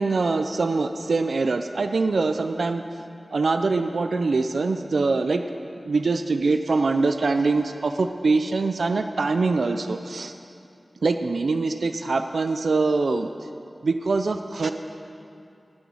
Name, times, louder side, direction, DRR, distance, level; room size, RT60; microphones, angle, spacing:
voice 1, 0.0-2.8 3.3-5.4 5.8-10.3 11.0-13.3 13.8-14.7, right 3 dB, 90° right, 7 dB, 0.4 m, -23 dB
10.0 x 7.0 x 8.9 m, 2.5 s
wide cardioid pair, 55°, 0 cm